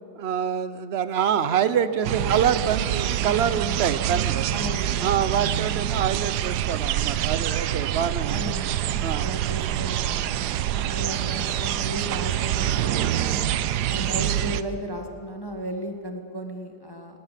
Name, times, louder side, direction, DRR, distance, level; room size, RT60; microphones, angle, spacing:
voice 1, 0.2-4.5 5.0-8.5 9.0-9.3, right 8 dB, 50° right, 13 dB, 1.0 m, -25 dB
sound 1, 2.0-14.6, right 11 dB, 90° right, 1.2 m, -26 dB
voice 2, 4.5-5.2 8.3-10.2 10.7-13.4 13.8-17.2, right 1 dB, 15° left, 3 dB, 1.7 m, -35 dB
20.5 x 19.0 x 7.6 m, 2.5 s
omnidirectional pair, 1.7 m